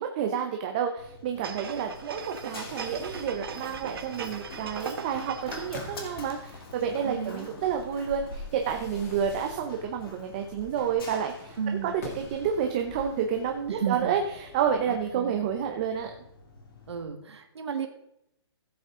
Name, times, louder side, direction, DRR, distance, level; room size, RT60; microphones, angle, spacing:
voice 1, 0.0-11.6 11.8-14.2 14.5-16.1, right 8 dB, 20° right, 4 dB, 0.6 m, -29 dB
Run, 1.0-17.0, left 3 dB, 55° left, 2.6 m, -46 dB
sound 1, 1.4-5.8 6.2-6.3, right 6 dB, 55° right, 1.4 m, -39 dB
Fireworks, 1.9-14.9, left 2 dB, 35° left, 2.0 m, -49 dB
voice 2, 7.0-7.5 11.6-12.0 13.7-14.2 14.9-15.4 16.9-17.9, right 7 dB, 75° right, 4 dB, 1.7 m, -33 dB
15.0 x 8.1 x 3.7 m, 0.79 s
hypercardioid pair, 175°, 14 cm